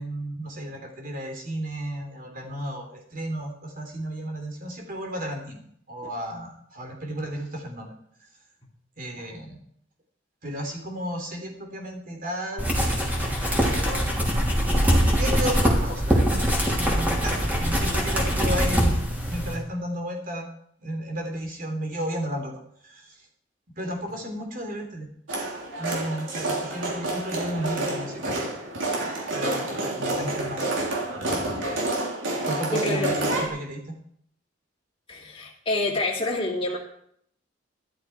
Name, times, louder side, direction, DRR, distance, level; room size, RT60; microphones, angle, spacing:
voice 1, 0.0-5.6 5.9-7.9 9.0-9.6 10.4-12.9 13.5-14.0 14.6-16.4 16.8-18.9 19.3-20.5 20.8-22.5 22.8-23.3 23.8-25.1 25.8-28.4 29.3-30.7 32.4-34.0, right 1 dB, 45° right, 2 dB, 3.2 m, -33 dB
sound 1, 12.6-19.6, equal, 10° right, 3.0 m, -23 dB
sound 2, 25.3-33.5, right 2 dB, 80° right, 3.2 m, -29 dB
voice 2, 32.7-33.2 35.1-36.8, left 2 dB, 30° left, -5 dB, 2.7 m, -27 dB
13.0 x 12.0 x 4.6 m, 0.68 s
head